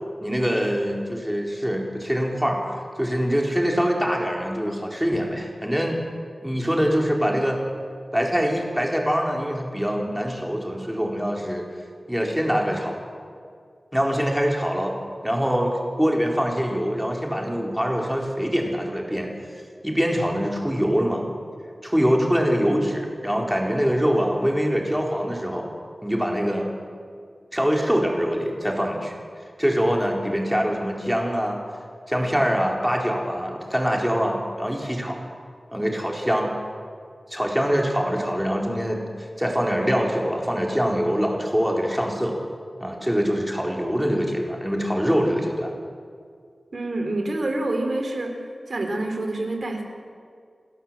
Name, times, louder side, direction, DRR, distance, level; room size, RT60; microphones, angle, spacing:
voice 1, 0.2-6.0 6.4-7.6 8.1-11.6 12.1-13.0 13.9-15.0 15.2-15.7 16.0-19.3 19.8-21.2 21.8-25.7 26.0-26.7 27.5-29.1 29.6-31.6 32.1-35.2 35.7-36.5 37.3-42.3 42.8-45.7, equal, 5° right, 0 dB, 4.1 m, -24 dB
voice 2, 46.7-49.8, right 2 dB, 70° right, 4 dB, 3.6 m, -27 dB
29.0 x 12.5 x 7.6 m, 2.1 s
wide cardioid pair, 65°, 0 cm